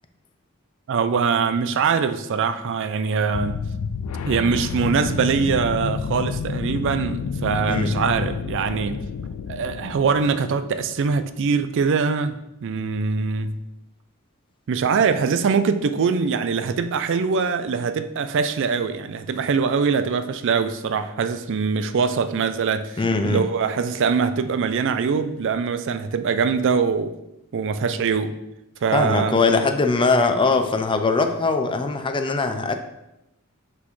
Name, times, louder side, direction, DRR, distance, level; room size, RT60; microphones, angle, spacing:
voice 1, 0.9-3.6 4.3-9.0 9.5-12.4 12.6-13.6 14.7-27.2 27.5-28.4 28.8-29.6, right 5 dB, 60° right, 0.4 m, -23 dB
sound 1, 3.3-11.1, left 5 dB, 80° left, 0.4 m, -29 dB
voice 2, 7.6-8.0 23.0-23.4 28.9-32.8, left 3 dB, 25° left, 0.5 m, -21 dB
6.2 x 5.8 x 3.2 m
head